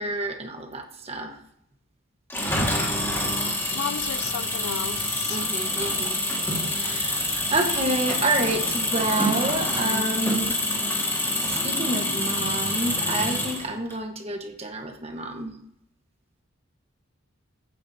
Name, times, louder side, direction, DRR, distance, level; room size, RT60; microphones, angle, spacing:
voice 1, 0.0-1.4 5.3-6.2 6.6-10.6 11.4-15.5, right 2 dB, 30° right, 1.2 m, -29 dB
Engine, 2.3-13.9, left 1 dB, 10° left, 1.8 m, -26 dB
voice 2, 3.7-5.5, left 8 dB, 85° left, 0.3 m, -34 dB
14.5 x 9.6 x 2.8 m
head